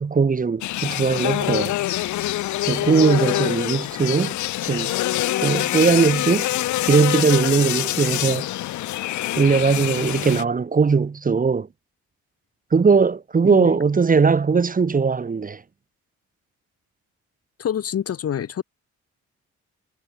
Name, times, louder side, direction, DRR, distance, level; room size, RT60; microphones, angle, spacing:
voice 1, 0.0-1.7 2.6-4.4 4.6-4.9 5.4-6.5 6.9-8.5 9.4-11.7 12.7-15.6, right 5 dB, 25° right, 1.2 m, -19 dB
sound 1, 0.6-10.4, left 15 dB, 70° left, 0.7 m, -25 dB
voice 2, 17.6-18.6, left 9 dB, 50° left, 1.5 m, -26 dB
cardioid pair, 90°, 30 cm